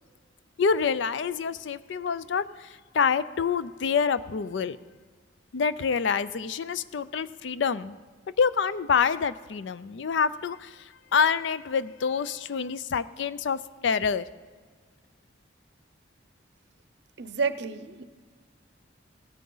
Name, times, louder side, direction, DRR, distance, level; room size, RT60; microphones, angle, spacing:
voice 1, 0.6-4.8 5.5-8.0 8.4-14.2, left 6 dB, 70° left, 15 dB, 0.4 m, -27 dB
voice 2, 17.2-18.0, right 5 dB, 60° right, 12 dB, 0.6 m, -30 dB
16.5 x 9.2 x 3.9 m, 1.5 s
head